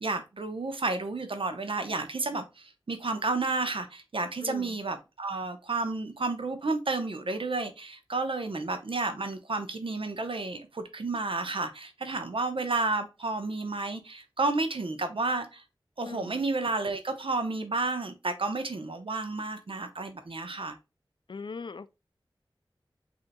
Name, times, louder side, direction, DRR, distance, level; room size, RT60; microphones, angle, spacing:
voice 1, 0.0-15.6 16.0-20.8, right 3 dB, 70° right, 0.8 m, -31 dB
voice 2, 4.4-4.8 16.0-16.4 21.3-21.9, left 4 dB, 60° left, 0.3 m, -40 dB
7.8 x 2.8 x 2.2 m
wide cardioid pair, 60°, 9 cm